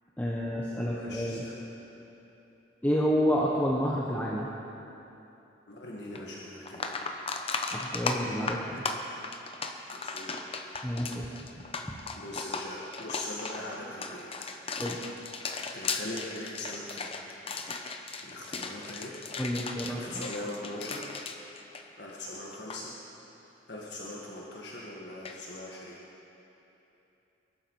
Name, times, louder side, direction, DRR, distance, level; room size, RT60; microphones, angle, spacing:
voice 1, 0.2-1.4 2.8-4.5 7.7-8.8 10.8-11.3 14.8-15.0 19.4-20.3, equal, 10° left, -4 dB, 1.1 m, -29 dB
voice 2, 0.8-1.6 5.7-7.0 9.9-10.9 12.2-14.3 15.7-17.2 18.2-19.1 19.9-21.0 22.0-22.9 23.7-26.0, left 1 dB, 60° left, -4 dB, 1.7 m, -41 dB
sound 1, 6.2-6.3 6.6-22.3 22.5-22.8 25.2-25.4, left 4 dB, 30° left, 0.9 m, -36 dB
22.5 x 12.0 x 4.7 m, 3.0 s
head